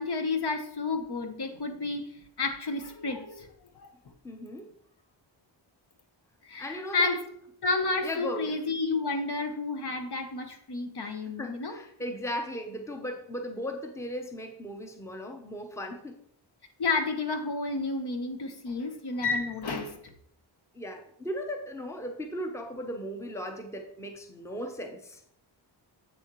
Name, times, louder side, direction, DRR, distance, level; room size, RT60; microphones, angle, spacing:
voice 1, 0.0-2.1 2.4-3.5 3.7-3.9 6.4-7.2 7.6-11.7 16.8-20.0, left 3 dB, 55° left, 6 dB, 1.1 m, -31 dB
voice 2, 4.2-4.7 6.6-7.1 8.0-8.6 11.0-11.1 11.4-16.2 20.7-25.2, equal, 5° left, 4 dB, 0.8 m, -37 dB
8.2 x 6.3 x 3.1 m, 0.69 s
wide cardioid pair, 105°, 46 cm